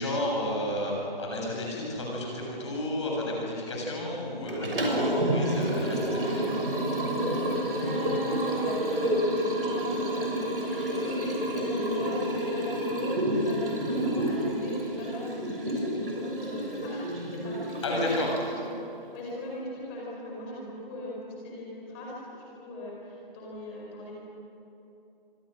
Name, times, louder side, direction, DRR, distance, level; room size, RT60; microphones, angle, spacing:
voice 1, 0.0-6.5 17.8-18.3, left 1 dB, 30° left, -1 dB, 6.8 m, -31 dB
Liquid, 4.5-18.6, equal, 70° right, 6.6 m, -29 dB
voice 2, 7.4-10.2 10.6-18.8 19.1-24.1, left 1 dB, 10° left, -4 dB, 5.0 m, -38 dB
26.5 x 25.5 x 6.5 m, 3.0 s
figure-of-eight pair, 170°, 29 cm